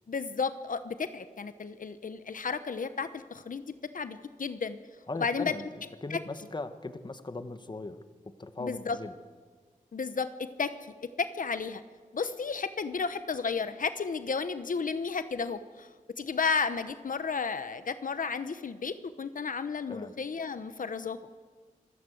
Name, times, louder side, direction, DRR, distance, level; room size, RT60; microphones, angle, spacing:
voice 1, 0.1-3.6 3.9-4.8 5.2-5.5 6.1-6.2 8.6-9.0 9.9-10.7 11.2-11.8 12.1-15.9 16.2-21.2, left 5 dB, 75° left, 11 dB, 1.0 m, -32 dB
voice 2, 5.1-5.7 6.0-8.0 8.3-9.1 19.9-20.1, left 2 dB, 35° left, 10 dB, 1.2 m, -38 dB
26.0 x 15.0 x 7.8 m, 1.5 s
wide cardioid pair, 85°, 14 cm